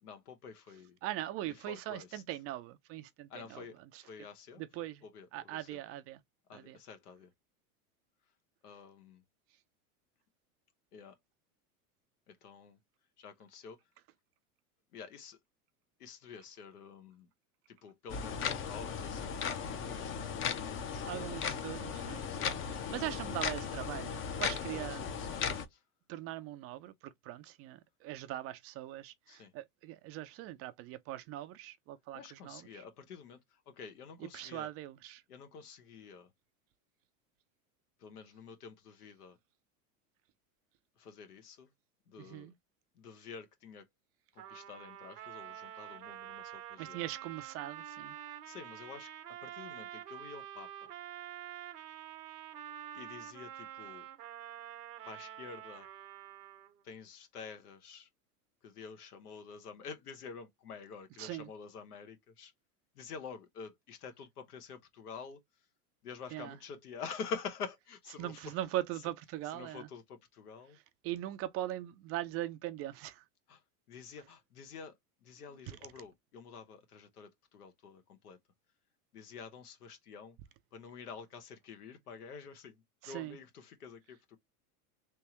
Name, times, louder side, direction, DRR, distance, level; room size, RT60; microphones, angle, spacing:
voice 1, 0.0-1.0 1.7-2.2 3.3-4.6 5.0-5.6 6.5-7.3 8.6-9.2 10.9-11.2 12.3-12.8 13.2-13.8 14.9-15.4 16.0-17.3 17.7-19.3 19.7-21.6 22.3-23.2 24.5-25.8 29.3-29.5 32.1-33.4 33.7-34.7 35.3-36.3 38.0-39.4 41.0-41.7 42.1-42.5 43.0-43.8 44.3-47.0 48.5-49.1 49.4-50.9 52.9-54.1 55.0-55.9 56.8-58.1 58.6-62.5 62.9-65.4 66.0-68.5 69.5-70.8 73.5-73.6 73.9-78.4 79.1-80.4 80.7-84.4, left 5 dB, 85° left, 1.1 m, -48 dB
voice 2, 1.0-4.0 4.6-5.0 5.3-6.2 6.5-6.8 20.8-22.3 22.6-25.0 26.1-32.8 34.2-35.2 42.2-42.5 46.8-48.1 61.2-61.5 66.3-66.6 68.2-69.9 70.7-73.2 75.7-75.8 83.0-83.4, right 14 dB, 35° right, 0.4 m, -41 dB
sound 1, 18.1-25.7, left 7 dB, 30° left, 0.6 m, -37 dB
Trumpet, 44.4-56.8, right 11 dB, 85° right, 0.9 m, -47 dB
3.4 x 3.0 x 2.9 m
hypercardioid pair, 105°, 45 cm